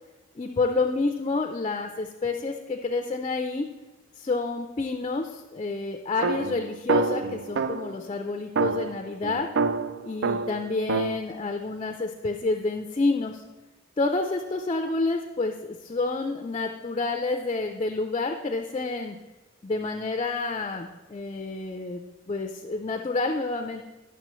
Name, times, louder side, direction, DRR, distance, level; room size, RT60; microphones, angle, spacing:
voice 1, 0.4-3.7 4.2-9.5 10.0-13.4 14.0-19.2 19.6-22.0 22.3-23.9, left 3 dB, 30° left, 4 dB, 0.4 m, -29 dB
sound 1, 6.2-8.0 8.6-11.2, right 4 dB, 65° right, 0.3 m, -27 dB
10.0 x 6.1 x 3.0 m, 1.1 s
head